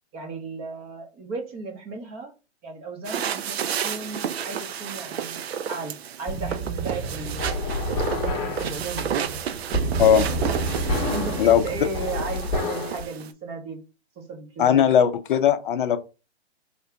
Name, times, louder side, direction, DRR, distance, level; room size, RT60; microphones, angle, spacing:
voice 1, 0.1-2.3 2.6-3.6 3.8-5.4 5.7-7.7 8.1-9.4 11.1-13.8 14.2-14.9, right 3 dB, 15° right, 0.7 m, -35 dB
sound 1, 3.0-13.3, right 8 dB, 65° right, 0.6 m, -32 dB
sound 2, 6.3-13.0, equal, 15° left, 0.9 m, -28 dB
voice 2, 10.0-10.3 11.4-11.6 14.6-16.0, left 9 dB, 50° left, 0.6 m, -18 dB
3.6 x 2.7 x 3.3 m
hypercardioid pair, 145°, 34 cm